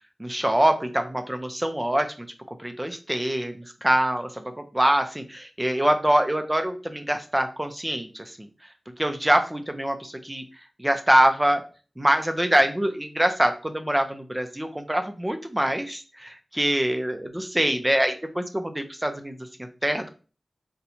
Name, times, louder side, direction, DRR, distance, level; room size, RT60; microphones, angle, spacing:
voice 1, 0.2-2.3 2.6-11.6 12.0-20.1, right 1 dB, 15° right, 6 dB, 0.5 m, -24 dB
4.0 x 2.2 x 2.8 m, 0.36 s
wide cardioid pair, 100°, 0 cm